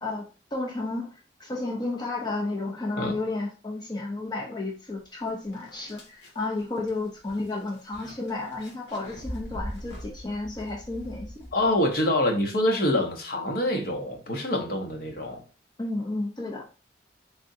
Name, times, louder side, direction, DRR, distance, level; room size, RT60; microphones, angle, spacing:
voice 1, 0.0-11.5 15.8-16.7, left 2 dB, 25° left, 0.6 m, -32 dB
sound 1, 5.0-5.1 5.5-11.9, equal, 75° left, 1.5 m, -41 dB
voice 2, 11.5-15.4, left 1 dB, 55° left, 0.9 m, -25 dB
3.6 x 3.4 x 2.6 m
head